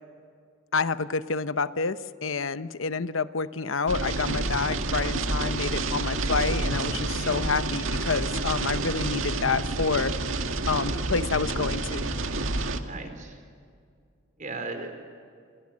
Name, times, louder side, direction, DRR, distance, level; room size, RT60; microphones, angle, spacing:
voice 1, 0.7-10.1 10.7-12.1, left 4 dB, 90° left, 13 dB, 0.9 m, -28 dB
sound 1, 3.9-12.8, right 2 dB, 90° right, 2.0 m, -29 dB
voice 2, 7.2-7.5 12.8-13.3 14.4-14.9, right 3 dB, 40° right, 6 dB, 4.5 m, -36 dB
28.0 x 27.5 x 7.5 m, 2.2 s
head